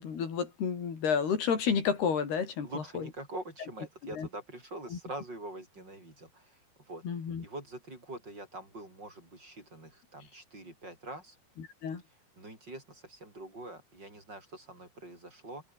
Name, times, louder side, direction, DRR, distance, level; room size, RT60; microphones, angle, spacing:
voice 1, 0.0-3.1 4.1-4.3 4.9-5.0 7.0-7.5 11.6-12.0, left 6 dB, 90° left, 6.4 m, -31 dB
voice 2, 2.6-7.0 7.4-11.4 12.4-15.6, right 2 dB, 25° right, 7.3 m, -44 dB
open air
omnidirectional pair, 4.4 m